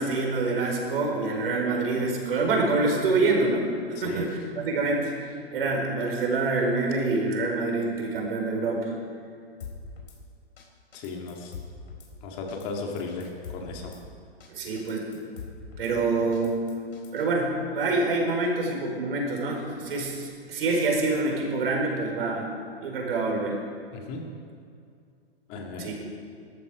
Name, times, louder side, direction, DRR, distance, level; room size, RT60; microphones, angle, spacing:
voice 1, 0.0-5.1 5.5-8.9 14.5-15.2 15.8-16.6 17.1-22.5 22.8-23.6 25.8-25.9, right 3 dB, 65° right, 0 dB, 4.7 m, -26 dB
voice 2, 4.0-4.3 10.9-11.5 12.2-13.9 23.9-24.3 25.5-25.9, left 4 dB, 25° left, 1 dB, 2.1 m, -35 dB
Drum kit / Snare drum, 9.6-10.2 10.6-10.7 10.9-12.1 12.5-12.7 13.0-14.0 14.4-14.5 14.8-15.9 16.3-17.3, left 6 dB, 75° left, 4.0 m, -43 dB
19.0 x 13.5 x 5.1 m, 2.3 s
hypercardioid pair, 160°, 31 cm